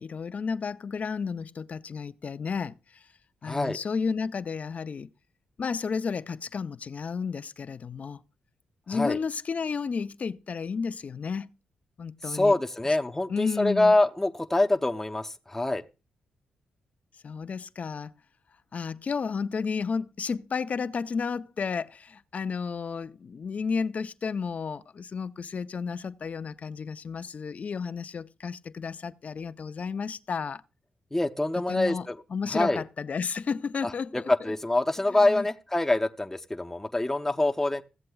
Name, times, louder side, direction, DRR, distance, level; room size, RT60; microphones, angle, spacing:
voice 1, 0.0-3.0 3.4-5.1 5.6-8.2 8.9-11.5 12.0-12.5 13.3-13.9 17.2-18.1 18.7-30.6 31.7-32.1 32.3-34.3 35.1-35.5, left 5 dB, 55° left, 0.6 m, -32 dB
voice 2, 3.4-3.8 8.9-9.2 12.3-15.8 31.1-32.1 32.5-32.8 33.8-37.8, left 2 dB, 10° left, 0.7 m, -25 dB
16.0 x 7.6 x 2.3 m
supercardioid pair, 50°, 3 cm